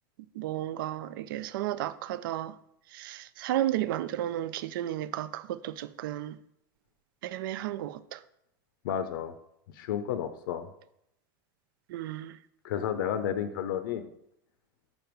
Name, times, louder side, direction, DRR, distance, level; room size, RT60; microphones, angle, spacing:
voice 1, 0.3-2.5 2.9-6.4 7.2-8.2 11.9-12.4, right 13 dB, 75° right, 0.4 m, -33 dB
voice 2, 8.8-9.3 9.8-10.7 12.6-14.1, left 9 dB, 75° left, 0.5 m, -31 dB
5.6 x 5.2 x 4.5 m
supercardioid pair, 150°, 11 cm